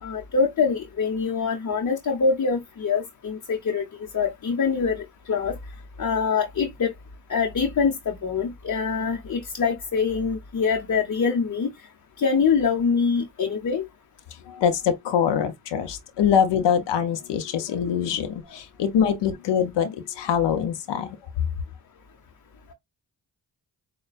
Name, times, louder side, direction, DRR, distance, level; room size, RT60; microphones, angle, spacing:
voice 1, 0.0-3.9 4.1-5.6 6.0-6.9 7.3-11.7 12.2-13.8, left 5 dB, 45° left, 0.8 m, -24 dB
voice 2, 14.5-21.1, left 8 dB, 90° left, 0.7 m, -24 dB
6.5 x 2.3 x 2.4 m
cardioid pair, 50°, 41 cm